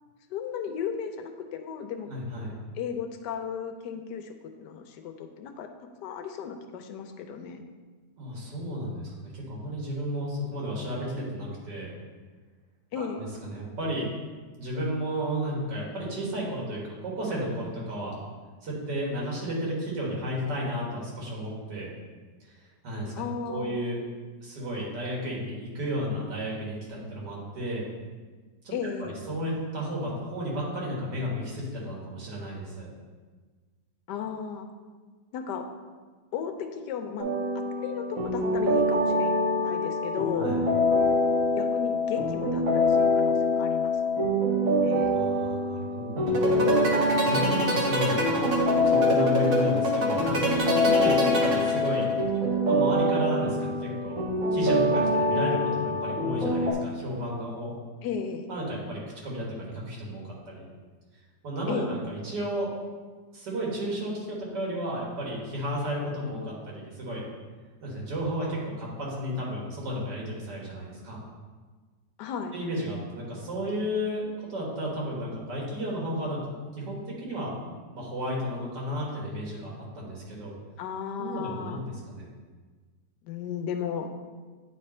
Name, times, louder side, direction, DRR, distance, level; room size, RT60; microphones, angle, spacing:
voice 1, 0.3-2.1 2.7-5.7 6.0-7.6 12.9-13.2 23.2-23.8 28.7-29.1 34.1-34.7 35.3-35.7 36.3-37.3 37.5-40.5 41.6-43.9 44.8-45.2 51.2-51.4 58.0-58.5 61.7-61.9 72.2-72.5 80.8-81.8 83.2-84.1, left 7 dB, 90° left, 6 dB, 1.3 m, -35 dB
voice 2, 2.1-2.5 8.2-11.9 12.9-14.1 14.6-18.2 18.6-21.9 22.4-23.1 23.5-24.0 24.4-27.9 28.6-28.7 29.0-32.9 40.4-40.6 45.0-46.7 47.2-48.2 48.8-52.1 52.7-54.2 54.5-57.7 58.5-60.6 61.4-62.7 63.3-67.2 67.8-71.2 72.5-76.4 76.8-77.5 77.9-80.5 81.2-82.3, equal, 85° right, -3 dB, 2.2 m, -33 dB
sound 1, 37.2-56.7, left 1 dB, 55° right, 1.3 m, -25 dB
sound 2, 46.3-52.2, right 2 dB, 40° right, 1.0 m, -27 dB
9.2 x 3.4 x 4.3 m, 1.4 s
omnidirectional pair, 1.8 m